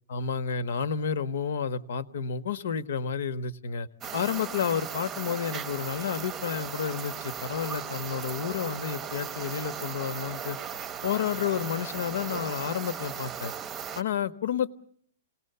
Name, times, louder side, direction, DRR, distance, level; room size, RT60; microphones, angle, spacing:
voice 1, 0.1-3.9 4.1-10.6 11.0-13.5 14.0-14.7, left 7 dB, 70° left, 13 dB, 1.4 m, -30 dB
sound 1, 4.0-14.0, right 7 dB, 15° right, 0.9 m, -37 dB
28.0 x 19.0 x 6.9 m, 0.62 s
hypercardioid pair, 160°, 0 cm